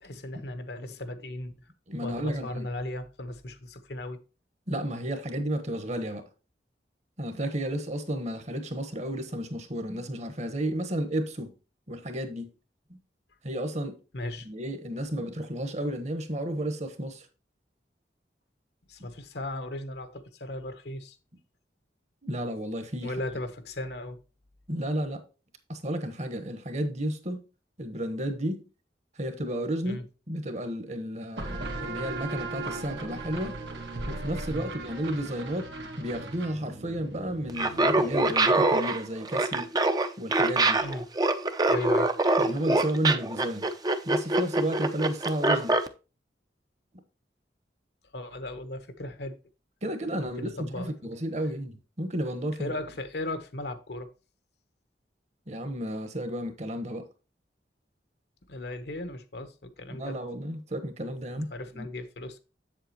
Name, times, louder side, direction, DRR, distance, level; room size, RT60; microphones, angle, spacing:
voice 1, 0.0-1.7 2.0-4.2 14.1-14.5 18.9-21.2 23.0-24.2 29.8-30.0 34.5-34.7 40.8-41.1 41.7-42.1 48.1-49.4 50.3-51.2 52.6-54.1 58.5-60.2 61.3-62.4, left 1 dB, 65° left, 1.0 m, -37 dB
voice 2, 1.9-2.7 4.7-6.2 7.2-11.5 11.9-12.5 13.4-14.0 14.4-17.3 22.2-23.1 24.7-25.2 25.7-27.4 27.8-28.6 29.2-30.0 30.3-33.6 34.1-35.7 36.0-39.7 40.2-40.8 42.4-43.7 44.0-45.8 49.8-52.8 55.5-57.1 59.9-61.9, right 1 dB, 40° right, 1.2 m, -32 dB
sound 1, 31.4-38.7, right 2 dB, 85° right, 1.7 m, -38 dB
Laughter, 37.5-45.9, right 2 dB, 20° right, 0.6 m, -24 dB
7.8 x 7.6 x 3.0 m
head